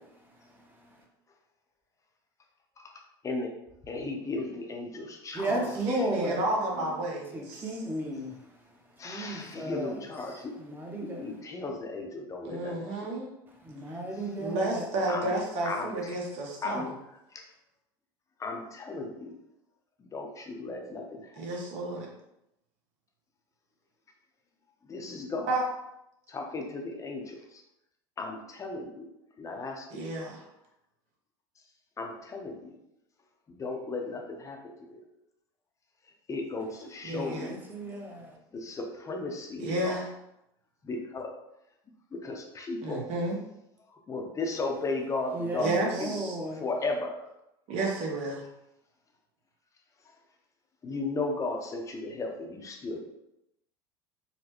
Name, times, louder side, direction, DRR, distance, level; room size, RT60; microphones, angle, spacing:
voice 1, 0.2-1.0 5.3-6.4 6.8-7.0 7.3-8.8 9.0-11.4 13.5-14.9 37.1-38.4 45.3-46.6, right 1 dB, 15° right, 0 dB, 0.9 m, -35 dB
voice 2, 3.9-5.7 9.0-10.5 11.0-12.9 15.1-15.3 15.6-16.2 16.6-16.9 17.3-17.4 18.4-19.3 20.0-21.4 24.9-25.5 26.3-27.6 28.2-29.1 29.4-30.0 32.0-32.8 33.5-34.6 34.9-35.0 36.3-37.6 38.5-40.0 40.8-41.3 42.2-43.0 44.1-46.2 46.6-47.2 50.8-53.0, left 3 dB, 25° left, 1 dB, 0.7 m, -35 dB
voice 3, 5.5-7.6 12.4-13.3 14.4-16.9 21.4-22.1 25.5-25.6 29.9-30.4 37.0-37.5 39.6-40.1 42.8-43.4 45.6-46.4 47.7-48.4, right 2 dB, 55° right, -1 dB, 1.1 m, -31 dB
4.0 x 2.2 x 2.9 m, 0.85 s
hypercardioid pair, 95°, 13 cm